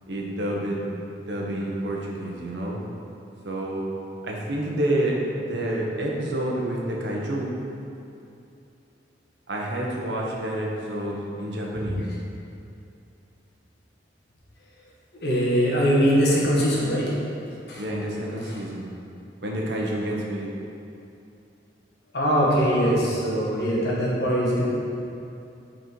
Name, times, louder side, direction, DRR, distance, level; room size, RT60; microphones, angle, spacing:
voice 1, 0.1-0.9 1.3-2.8 3.4-3.9 4.2-7.5 9.5-12.1 17.8-18.8 19.4-20.5, right 1 dB, 75° right, -2 dB, 1.0 m, -28 dB
voice 2, 15.2-17.1 17.7-17.8 18.4-18.6 22.1-24.7, equal, 65° left, -5 dB, 1.4 m, -22 dB
6.6 x 4.4 x 4.5 m, 2.7 s
head